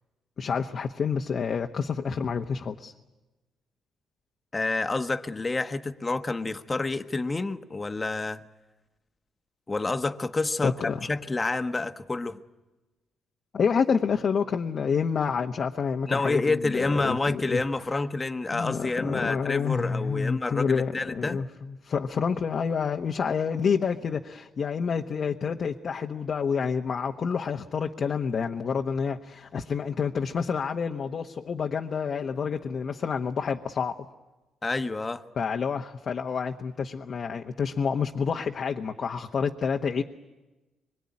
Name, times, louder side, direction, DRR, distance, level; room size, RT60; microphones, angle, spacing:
voice 1, 0.4-2.9 10.6-11.1 13.5-17.6 18.5-34.0 35.4-40.0, left 6 dB, 50° left, 3 dB, 1.1 m, -28 dB
voice 2, 4.5-8.4 9.7-12.4 16.1-21.4 34.6-35.2, left 3 dB, 25° left, 9 dB, 1.2 m, -28 dB
24.5 x 22.0 x 9.7 m, 1.1 s
cardioid pair, 90°, 0 cm